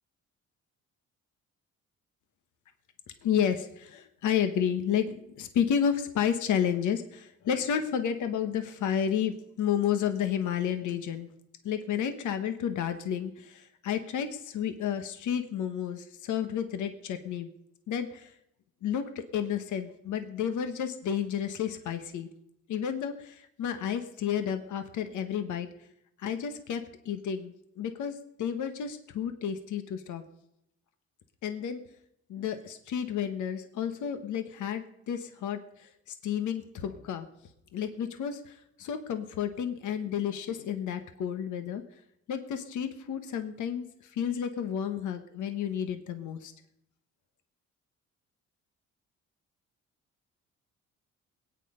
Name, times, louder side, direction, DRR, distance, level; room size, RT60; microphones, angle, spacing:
voice 1, 3.2-11.3 11.6-17.5 17.9-18.3 18.8-22.3 22.7-25.7 26.2-30.2 31.4-31.8 32.3-37.3 37.7-41.8 42.3-46.5, left 8 dB, 75° left, 8 dB, 1.4 m, -31 dB
21.0 x 9.3 x 5.2 m, 0.79 s
cardioid pair, 90°, 30 cm